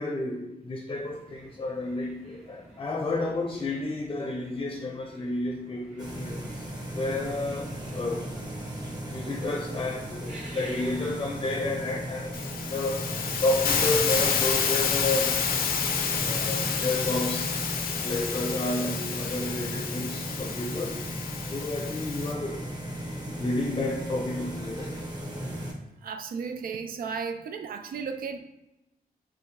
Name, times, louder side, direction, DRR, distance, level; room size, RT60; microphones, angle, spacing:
voice 1, 0.0-6.6 6.9-8.3 9.0-15.4 16.2-17.5 18.0-21.0 21.4-22.6 23.0-25.0, left 2 dB, 30° left, 0.5 m, -31 dB
sound 1, 0.9-11.9, right 1 dB, 45° right, 1.5 m, -50 dB
sound 2, 6.0-25.7, right 1 dB, 25° right, 0.8 m, -36 dB
Hiss, 12.3-22.3, left 7 dB, 75° left, 0.5 m, -29 dB
voice 2, 26.0-28.4, right 5 dB, 75° right, 0.4 m, -34 dB
5.5 x 2.6 x 3.2 m
wide cardioid pair, 175°, 15 cm